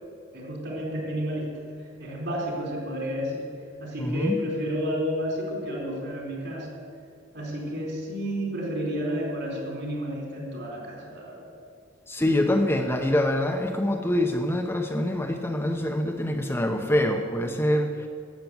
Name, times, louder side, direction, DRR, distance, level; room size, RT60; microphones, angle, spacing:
voice 1, 0.3-1.5 1.8-3.5 3.8-6.7 7.3-11.5, equal, 60° right, -1 dB, 4.1 m, -31 dB
voice 2, 4.0-4.4 12.1-18.1, left 1 dB, 10° left, 4 dB, 0.8 m, -25 dB
12.5 x 7.6 x 9.2 m, 2.3 s
head